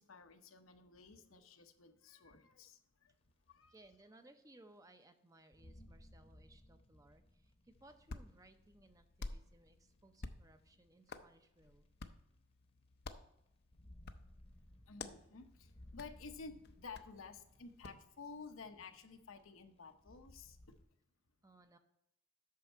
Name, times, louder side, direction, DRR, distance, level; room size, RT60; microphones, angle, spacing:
voice 1, 0.0-3.1 3.5-3.8 14.9-20.8, left 4 dB, 85° left, 7 dB, 0.9 m, -53 dB
sound 1, 3.2-3.3 4.0-4.1 4.7-4.8 5.5-10.7 11.6-11.7 13.5-20.8, left 1 dB, 30° left, 0.9 m, -62 dB
voice 2, 3.7-11.9 21.4-21.8, right 2 dB, 15° right, 8 dB, 0.6 m, -64 dB
Hands, 7.7-18.1, left 3 dB, 50° left, 0.5 m, -53 dB
8.5 x 6.3 x 4.5 m, 0.80 s
head